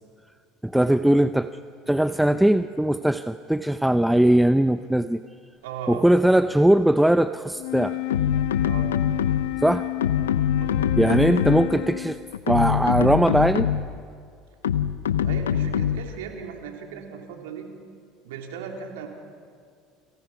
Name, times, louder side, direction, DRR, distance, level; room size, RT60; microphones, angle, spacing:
voice 1, 0.6-1.5 1.9-5.2 5.9-8.0 9.6-9.9 11.0-12.2 12.5-13.7, right 1 dB, 5° right, 11 dB, 0.7 m, -20 dB
voice 2, 5.6-6.0 8.6-8.9 10.5-11.0 15.2-17.7 18.2-19.1, right 7 dB, 75° right, 2 dB, 3.8 m, -37 dB
Wind instrument woodwind instrument, 7.5-12.3, left 22 dB, 70° left, 1.3 m, -31 dB
sound 1, 8.1-9.6 10.0-11.8 12.3-14.0 14.6-16.2, left 9 dB, 85° left, 0.7 m, -24 dB
29.5 x 27.0 x 5.9 m, 2.3 s
hypercardioid pair, 70°, 0 cm